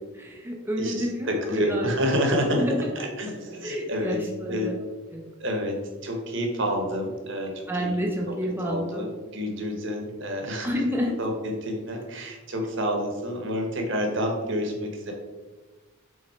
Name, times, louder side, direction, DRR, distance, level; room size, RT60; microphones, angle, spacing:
voice 1, 0.2-1.9 2.5-2.9 3.6-4.7 5.1-5.2 7.7-9.0 10.6-11.1, equal, 10° right, -1 dB, 0.7 m, -29 dB
voice 2, 0.8-2.7 2.9-4.2 4.5-4.7 5.4-5.8 6.0-8.3 8.6-10.7 11.2-15.1, equal, 55° right, 2 dB, 1.2 m, -29 dB
5.9 x 3.9 x 4.3 m, 1.3 s
head